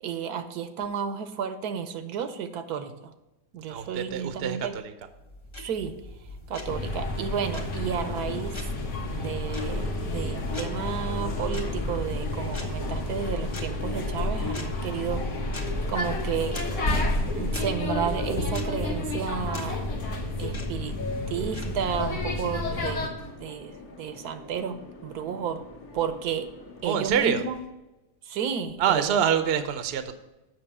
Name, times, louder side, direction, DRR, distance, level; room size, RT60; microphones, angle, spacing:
voice 1, 0.0-3.1 3.5-4.7 5.6-5.9 6.5-8.5 9.1-15.2 15.9-16.6 17.3-19.9 20.4-24.8 25.0-25.6 25.9-26.5 26.8-27.6 28.2-29.2, right 7 dB, 80° right, 10 dB, 1.3 m, -32 dB
voice 2, 3.7-4.9 26.8-27.4 28.8-30.2, right 8 dB, 50° right, 10 dB, 0.8 m, -26 dB
sound 1, 5.0-22.0, left 1 dB, 20° left, 1.0 m, -40 dB
sound 2, 6.6-23.1, left 2 dB, 55° left, 1.4 m, -31 dB
Subway metro underground, 7.5-26.8, left 3 dB, 70° left, 1.8 m, -41 dB
7.7 x 6.0 x 6.0 m, 1.0 s
omnidirectional pair, 1.6 m